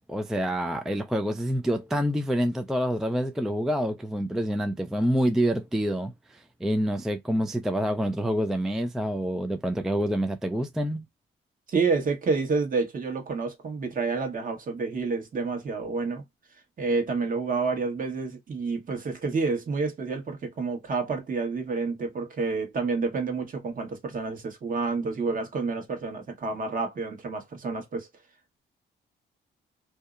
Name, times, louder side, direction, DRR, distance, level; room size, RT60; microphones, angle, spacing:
voice 1, 0.1-11.0, equal, ahead, 0.3 m, -27 dB
voice 2, 11.7-16.2 16.8-28.1, right 4 dB, 45° right, 1.1 m, -29 dB
2.7 x 2.0 x 2.4 m
cardioid pair, 90°, 20 cm